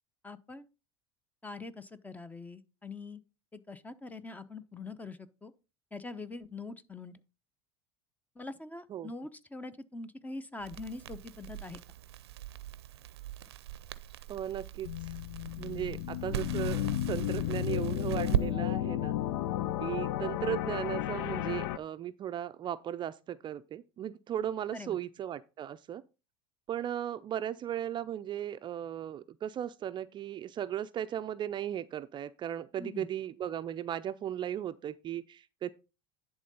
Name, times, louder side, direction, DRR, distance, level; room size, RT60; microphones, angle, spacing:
voice 1, 0.2-0.7 1.4-3.2 3.5-5.5 5.9-7.1 8.4-11.8 24.7-25.0 32.8-33.1, left 3 dB, 10° left, 0.8 m, -43 dB
Crackle, 10.6-18.5, right 12 dB, 85° right, 0.6 m, -39 dB
voice 2, 14.3-15.2 15.6-19.2 19.8-26.0 26.7-35.7, right 10 dB, 35° right, 0.5 m, -36 dB
sound 1, 14.8-21.8, left 13 dB, 75° left, 0.5 m, -33 dB
10.5 x 3.7 x 5.4 m
hypercardioid pair, 90°, 13 cm